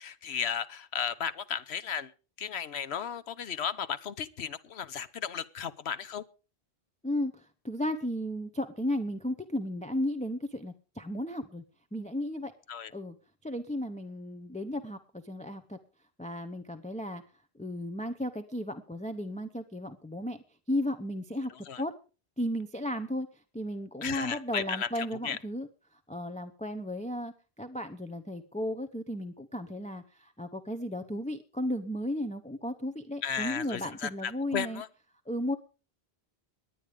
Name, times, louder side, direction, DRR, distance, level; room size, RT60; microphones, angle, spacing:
voice 1, 0.0-2.1 2.4-6.2 12.7-12.9 21.5-21.8 24.0-25.4 33.2-34.9, left 7 dB, 80° left, 15 dB, 1.2 m, -35 dB
voice 2, 7.0-11.6 11.9-12.5 12.9-13.1 13.4-15.8 16.2-17.2 17.5-20.4 20.7-21.5 21.8-21.9 22.4-23.3 23.5-25.7 26.1-34.8 35.3-35.6, left 1 dB, 10° left, 7 dB, 0.7 m, -34 dB
20.5 x 9.4 x 5.1 m, 0.36 s
omnidirectional pair, 1.1 m